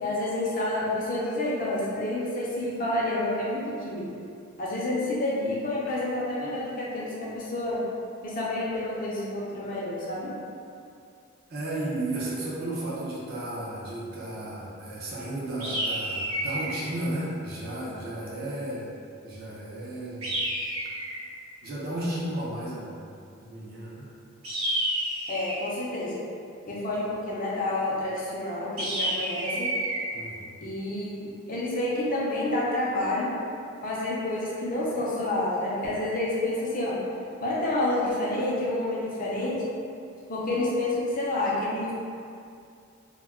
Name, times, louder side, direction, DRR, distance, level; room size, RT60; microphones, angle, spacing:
voice 1, 0.0-4.0 4.6-7.8 8.2-10.3 25.3-26.2 26.7-29.7 30.6-33.3 33.8-36.9 37.4-39.6 40.3-41.9, left 1 dB, 40° left, -6 dB, 0.5 m, -29 dB
voice 2, 11.5-18.9 19.2-20.3 21.6-23.1 23.4-24.1 30.1-30.6, right 1 dB, 45° right, -6 dB, 0.5 m, -34 dB
sound 1, 15.6-16.8 20.2-21.2 24.4-25.7 28.8-30.0, right 1 dB, 90° right, 0.7 m, -29 dB
2.2 x 2.2 x 3.5 m, 2.5 s
head